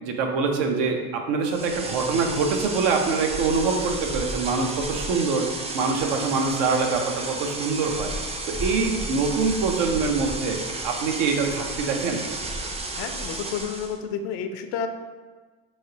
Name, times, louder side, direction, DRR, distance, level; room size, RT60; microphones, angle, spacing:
voice 1, 0.0-8.1 8.5-10.6 10.8-12.2, right 4 dB, 80° right, 3 dB, 0.7 m, -24 dB
sound 1, 1.4-14.0, right 2 dB, 15° right, 0.3 m, -32 dB
voice 2, 12.9-14.9, left 7 dB, 70° left, 8 dB, 0.5 m, -31 dB
3.9 x 3.2 x 2.8 m, 1.4 s
supercardioid pair, 85°, 40 cm